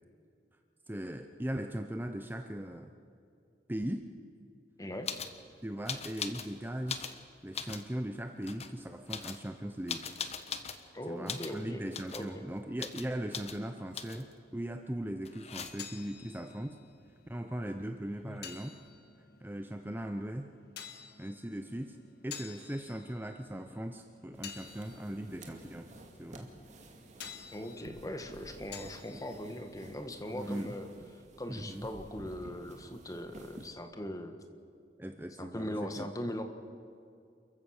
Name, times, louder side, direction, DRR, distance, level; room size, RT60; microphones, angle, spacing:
voice 1, 0.9-2.9 3.7-4.0 5.6-7.1 7.4-10.1 11.1-16.8 17.3-18.8 19.4-20.5 21.2-22.0 22.2-25.9 26.2-26.5 29.1-29.2 30.3-30.8 31.5-31.9 35.0-36.1, right 1 dB, 10° right, 6 dB, 0.7 m, -39 dB
voice 2, 4.8-5.1 10.9-11.8 12.1-12.3 27.5-30.9 31.4-34.3 35.4-36.4, equal, 20° left, 6 dB, 1.6 m, -40 dB
sound 1, 5.0-5.4 5.9-6.5 6.8-7.9 8.4-8.7 9.1-10.8 11.3-11.6 11.9-12.3 12.8-13.1 13.3-13.6 13.9-14.3 15.2-16.0 17.8-17.9 18.1-18.7, left 6 dB, 40° left, 1.2 m, -40 dB
sound 2, 15.5-30.9, left 7 dB, 65° left, 1.8 m, -52 dB
sound 3, 24.3-33.7, right 1 dB, 45° right, 2.3 m, -52 dB
28.5 x 15.0 x 6.6 m, 2.4 s
head